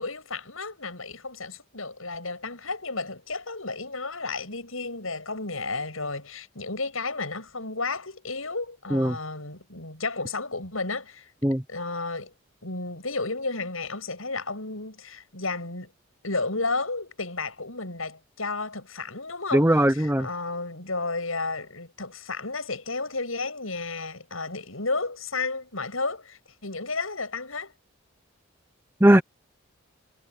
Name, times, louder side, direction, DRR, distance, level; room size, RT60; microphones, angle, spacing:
voice 1, 0.0-11.3 11.7-12.3 12.6-15.9 16.2-27.7, left 3 dB, 75° left, 7.9 m, -32 dB
voice 2, 19.5-20.3 29.0-29.2, right 1 dB, 10° right, 0.9 m, -19 dB
head